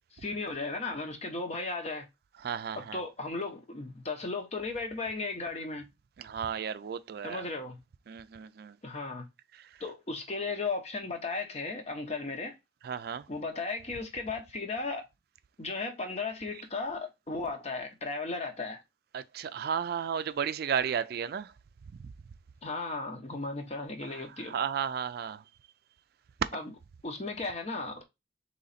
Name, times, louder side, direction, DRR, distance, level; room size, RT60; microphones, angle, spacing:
voice 1, 0.1-2.1 2.8-5.8 7.2-7.8 8.8-9.3 9.8-12.5 13.3-15.0 15.6-18.8 22.6-24.5 26.5-26.7 27.0-28.0, left 3 dB, 40° left, 0.9 m, -35 dB
voice 2, 2.4-3.0 6.2-7.5 8.1-8.8 9.5-9.8 12.8-13.3 19.1-21.5 22.0-22.1 24.0-25.4, right 7 dB, 60° right, 0.3 m, -34 dB
3.9 x 3.1 x 4.0 m
head